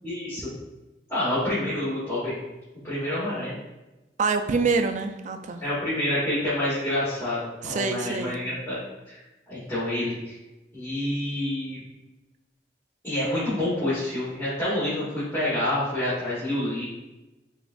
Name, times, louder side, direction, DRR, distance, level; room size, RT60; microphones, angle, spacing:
voice 1, 0.0-0.5 1.1-2.3 2.8-3.5 5.6-8.8 9.1-9.2 9.5-10.3 10.7-11.8 13.0-16.8, left 1 dB, 15° left, -13 dB, 1.4 m, -28 dB
voice 2, 4.2-5.6 7.6-8.4, right 4 dB, 45° right, 7 dB, 0.3 m, -26 dB
6.2 x 2.4 x 2.5 m, 1.0 s
head